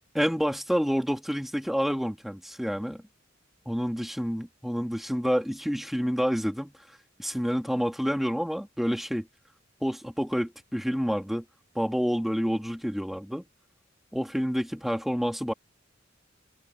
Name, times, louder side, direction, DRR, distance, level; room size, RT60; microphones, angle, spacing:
voice 1, 0.1-3.0 3.7-6.7 7.2-9.3 9.8-11.4 11.7-13.4 14.1-15.5, equal, ahead, 2.9 m, -28 dB
head